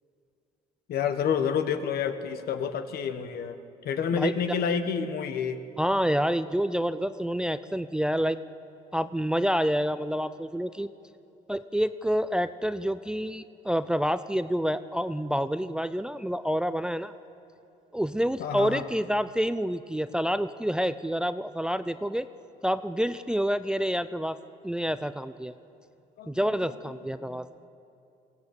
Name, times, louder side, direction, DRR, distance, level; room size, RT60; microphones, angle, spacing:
voice 1, 0.9-3.6 3.8-5.6 18.4-18.8 26.2-26.4 27.2-27.4, left 7 dB, 65° left, 9 dB, 1.4 m, -29 dB
voice 2, 5.8-8.4 8.9-10.9 11.5-17.1 17.9-22.3 22.6-24.4 24.6-25.5 26.3-27.5, equal, 5° right, 12 dB, 0.5 m, -28 dB
22.5 x 17.0 x 8.3 m, 2.7 s
cardioid pair, 110°, 17 cm